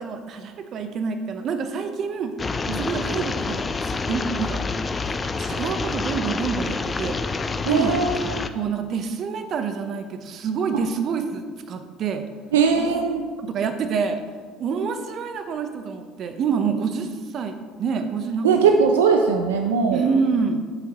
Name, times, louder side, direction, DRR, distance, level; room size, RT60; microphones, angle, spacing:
voice 1, 0.0-2.3 2.8-4.6 5.4-7.2 7.7-8.0 8.5-12.2 12.8-13.0 13.4-14.2 14.6-18.6 19.9-20.6, right 5 dB, 55° right, 8 dB, 0.8 m, -27 dB
sound 1, 2.4-8.5, left 4 dB, 30° left, 0.5 m, -27 dB
voice 2, 7.7-8.4 10.7-10.8 12.5-13.3 18.4-20.0, right 5 dB, 85° right, 4 dB, 0.5 m, -20 dB
9.0 x 7.4 x 3.0 m, 1.5 s
hypercardioid pair, 65°, 0 cm